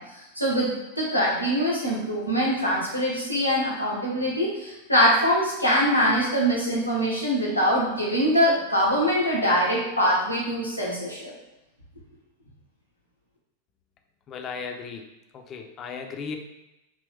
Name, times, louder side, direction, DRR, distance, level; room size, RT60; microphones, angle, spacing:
voice 1, 0.0-11.3, equal, 85° left, -4 dB, 1.2 m, -23 dB
voice 2, 14.3-16.4, left 5 dB, 30° left, 4 dB, 0.6 m, -36 dB
5.3 x 3.0 x 3.4 m, 0.93 s
figure-of-eight pair, 90°, 0 cm